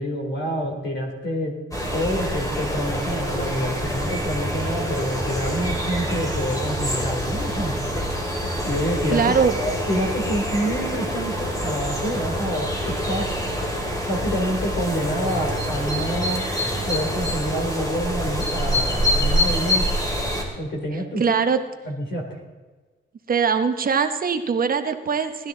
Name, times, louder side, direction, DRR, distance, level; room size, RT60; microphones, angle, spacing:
voice 1, 0.0-1.5 1.9-7.7 8.6-13.2 14.1-16.4 16.8-19.9 20.6-21.4 21.8-22.4, equal, 60° left, 2 dB, 3.1 m, -27 dB
sound 1, 1.7-20.4, equal, 15° left, 2.5 m, -26 dB
voice 2, 9.1-9.5 20.9-21.6 23.3-25.5, right 6 dB, 45° right, 8 dB, 0.9 m, -22 dB
17.5 x 12.5 x 3.9 m, 1.3 s
wide cardioid pair, 155°, 20 cm